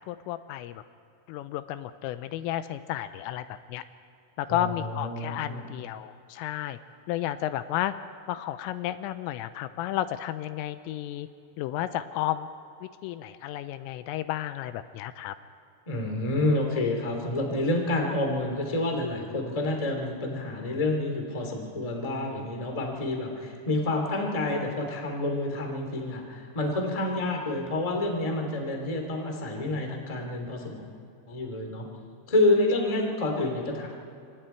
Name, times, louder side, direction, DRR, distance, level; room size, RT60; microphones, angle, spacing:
voice 1, 0.1-0.8 1.3-3.8 4.4-6.8 7.1-7.9 8.3-11.3 11.6-12.5 12.8-15.3, left 12 dB, 85° left, 11 dB, 3.2 m, -32 dB
voice 2, 4.5-5.6 15.8-30.8 31.3-31.8 32.3-33.9, left 2 dB, 15° left, 2 dB, 1.5 m, -28 dB
28.5 x 25.5 x 4.6 m, 2.6 s
omnidirectional pair, 6.0 m